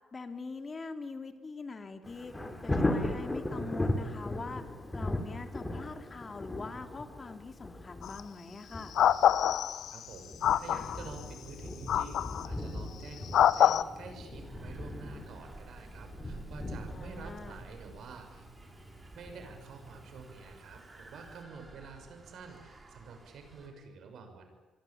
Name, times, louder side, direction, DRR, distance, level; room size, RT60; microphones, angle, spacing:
voice 1, 0.1-2.3 2.6-4.6 4.9-8.9 16.9-17.6, left 3 dB, 30° left, 7 dB, 3.1 m, -43 dB
Thunder, 2.0-20.8 21.3-21.4, left 1 dB, 15° left, 3.7 m, -38 dB
sound 1, 8.0-8.2 9.0-10.0 10.4-11.0 11.9-12.5 13.3-13.8, left 10 dB, 70° left, 0.9 m, -25 dB
voice 2, 9.9-10.3 10.6-18.5 19.1-24.5, right 5 dB, 70° right, 6 dB, 6.3 m, -48 dB
sound 2, 14.3-23.7, right 3 dB, 30° right, 5.7 m, -51 dB
26.5 x 23.0 x 8.7 m, 1.2 s
cardioid pair, 90°, 0 cm